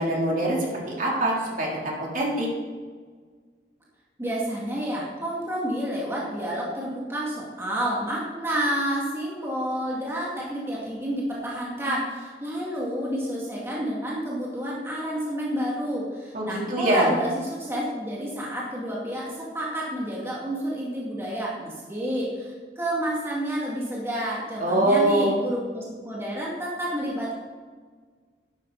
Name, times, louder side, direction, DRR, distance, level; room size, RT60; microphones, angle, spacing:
voice 1, 0.0-1.7 2.1-2.5 16.3-17.1 24.6-25.4, right 1 dB, 50° right, -3 dB, 3.4 m, -23 dB
voice 2, 4.2-27.4, equal, 15° right, -5 dB, 2.3 m, -30 dB
12.5 x 11.5 x 4.1 m, 1.5 s
head